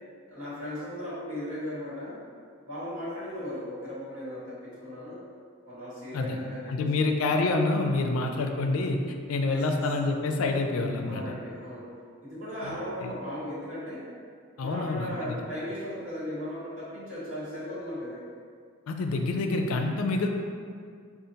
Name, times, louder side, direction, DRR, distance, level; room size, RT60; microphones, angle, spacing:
voice 1, 0.3-2.2 2.6-5.2 5.6-7.1 9.5-9.6 11.0-11.9 12.2-14.0 14.6-18.2, left 1 dB, 75° right, -10 dB, 1.5 m, -37 dB
voice 2, 6.7-9.0 9.3-11.2 12.6-12.7 13.0-13.1 14.6-15.4 18.9-20.3, left 3 dB, 80° left, 4 dB, 0.4 m, -27 dB
5.0 x 2.4 x 2.7 m, 2.1 s
head